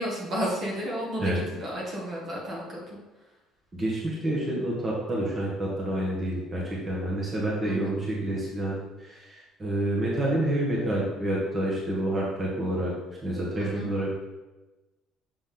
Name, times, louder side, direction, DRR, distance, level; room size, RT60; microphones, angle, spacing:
voice 1, 0.0-2.8 7.6-7.9 13.6-13.9, equal, 45° right, -4 dB, 1.8 m, -32 dB
voice 2, 3.7-12.9 13.2-14.1, right 1 dB, 30° right, -4 dB, 1.7 m, -28 dB
6.9 x 4.0 x 3.9 m, 1.1 s
cardioid pair, 110°, 0 cm